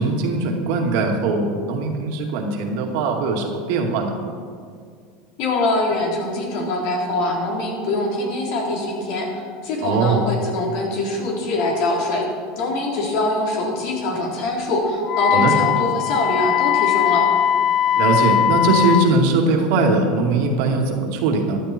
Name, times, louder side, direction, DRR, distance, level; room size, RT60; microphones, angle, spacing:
voice 1, 0.0-4.1 9.8-10.3 15.3-15.5 18.0-21.6, right 3 dB, 70° right, 2 dB, 2.2 m, -20 dB
voice 2, 5.4-12.2 12.6-17.3, left 2 dB, 65° left, -1 dB, 3.7 m, -23 dB
Wind instrument woodwind instrument, 15.1-19.1, left 10 dB, 45° left, 0.4 m, -19 dB
14.0 x 11.0 x 4.5 m, 2.1 s
supercardioid pair, 110°, 0 cm